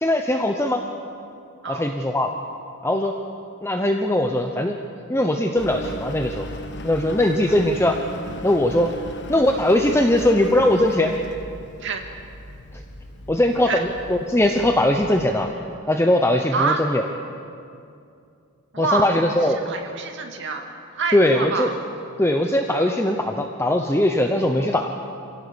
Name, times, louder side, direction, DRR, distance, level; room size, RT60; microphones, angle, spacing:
voice 1, 0.0-0.8 1.7-2.3 2.8-3.1 3.6-4.8 5.1-6.5 6.8-8.0 8.4-8.9 9.3-11.1 13.3-13.8 14.1-15.5 15.9-17.0 18.8-19.6 21.1-21.7 22.2-24.9, left 1 dB, 10° left, 3 dB, 0.9 m, -20 dB
Engine, 5.6-15.3, left 1 dB, 50° left, 1.3 m, -37 dB
voice 2, 6.9-7.4 8.9-9.0 11.8-12.0 13.6-13.8 16.5-16.9 18.7-19.1 19.4-20.7 20.9-21.7, right 4 dB, 55° right, 3 dB, 2.4 m, -27 dB
27.0 x 17.5 x 7.1 m, 2.5 s
head